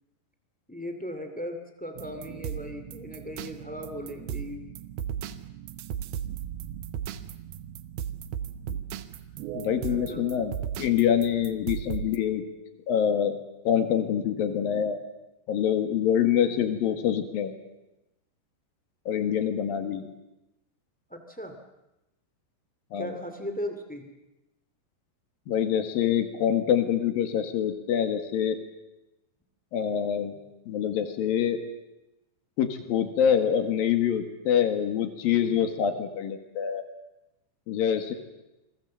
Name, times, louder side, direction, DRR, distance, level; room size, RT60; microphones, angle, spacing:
voice 1, 0.7-4.7 9.8-10.2 21.1-21.6 23.0-24.1, equal, 15° left, 6 dB, 0.3 m, -37 dB
sound 1, 1.9-12.2, right 9 dB, 70° right, 2.6 m, -36 dB
voice 2, 9.5-12.4 12.9-13.4 13.6-15.0 15.5-17.5 19.1-20.1 22.9-23.1 25.5-28.6 29.7-30.4 30.7-31.6 32.6-36.8 37.7-38.1, left 9 dB, 60° left, 7 dB, 3.1 m, -25 dB
28.0 x 21.5 x 7.6 m, 0.95 s
omnidirectional pair, 5.1 m